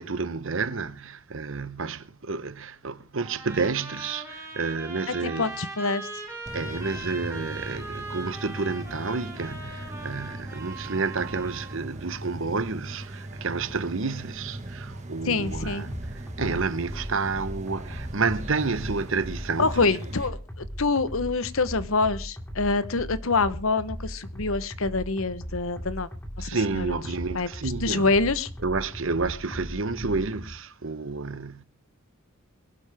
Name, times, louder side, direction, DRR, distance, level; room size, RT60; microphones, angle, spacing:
voice 1, 0.0-5.5 6.5-20.0 26.4-28.1 28.6-31.6, right 4 dB, 60° right, 0.9 m, -30 dB
Trumpet, 3.2-11.8, right 2 dB, 10° right, 4.6 m, -40 dB
voice 2, 5.2-6.1 15.2-15.8 19.6-26.1 26.4-26.8 27.3-27.5 27.8-28.5, left 3 dB, 70° left, 1.0 m, -26 dB
sound 1, 6.5-20.3, right 1 dB, 30° right, 1.7 m, -39 dB
sound 2, 15.4-30.5, equal, 10° left, 2.7 m, -38 dB
22.0 x 12.5 x 3.5 m
head